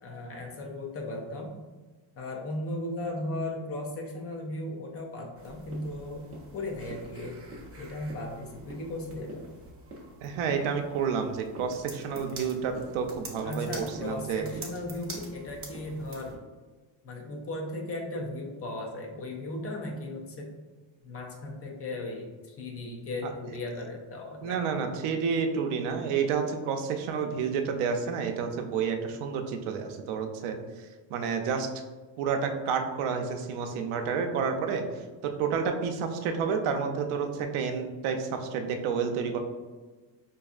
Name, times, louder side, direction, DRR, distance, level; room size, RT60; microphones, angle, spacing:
voice 1, 0.0-1.5 2.2-7.4 7.8-9.4 13.4-16.4 17.0-20.5 21.0-24.6, left 1 dB, 30° left, 1 dB, 0.4 m, -36 dB
sound 1, 5.3-16.4, right 2 dB, 30° right, 0.5 m, -45 dB
voice 2, 10.2-14.5 24.4-30.6 31.1-31.7 32.2-34.8 35.2-39.4, right 6 dB, 80° right, 4 dB, 0.6 m, -30 dB
5.0 x 2.6 x 2.4 m, 1.3 s
cardioid pair, 175°, 50 cm